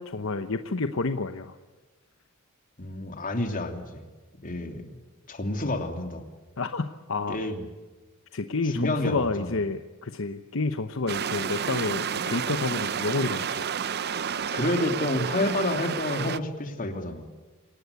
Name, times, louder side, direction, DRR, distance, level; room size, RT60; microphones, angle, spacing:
voice 1, 0.0-1.6 6.6-7.4 8.3-13.6, left 3 dB, 65° left, 9 dB, 0.9 m, -29 dB
voice 2, 2.8-4.0 4.4-4.9 5.3-6.2 7.3-7.6 8.7-9.5 14.5-17.2, left 1 dB, 40° left, 5 dB, 3.0 m, -29 dB
sound 1, 11.1-16.4, right 7 dB, 50° right, 0.7 m, -30 dB
28.0 x 18.5 x 8.3 m, 1.3 s
head